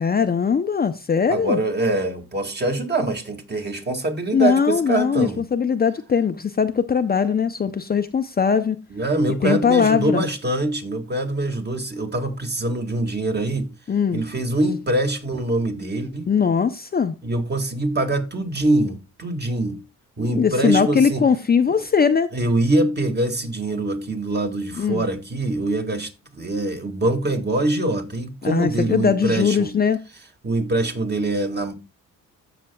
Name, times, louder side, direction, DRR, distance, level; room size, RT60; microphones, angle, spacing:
voice 1, 0.0-1.6 4.3-8.8 9.4-10.3 13.9-14.2 16.3-17.1 20.3-22.3 24.8-25.0 28.4-30.0, left 6 dB, 30° left, 0.5 m, -20 dB
voice 2, 1.3-5.4 8.9-13.7 14.1-16.3 17.2-19.8 20.2-21.2 21.7-21.8 22.3-29.7 30.4-31.7, right 2 dB, 30° right, 1.8 m, -24 dB
15.0 x 5.8 x 2.2 m
cardioid pair, 90°, 32 cm